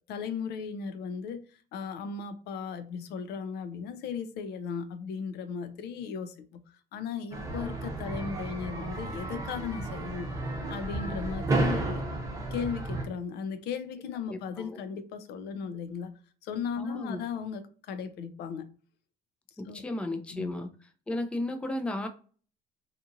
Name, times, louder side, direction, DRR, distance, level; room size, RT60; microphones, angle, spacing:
voice 1, 0.1-1.4 1.7-6.6 6.9-10.3 10.7-12.0 12.5-16.1 16.4-18.7 19.6-19.8 20.3-20.5, left 6 dB, 75° left, 0.5 m, -36 dB
sound 1, 7.3-13.0, right 2 dB, 20° right, 0.7 m, -32 dB
voice 2, 14.3-14.8 16.8-17.2 19.6-20.7 21.1-22.1, left 1 dB, 5° left, 0.3 m, -34 dB
2.8 x 2.4 x 2.5 m
cardioid pair, 110°, 17 cm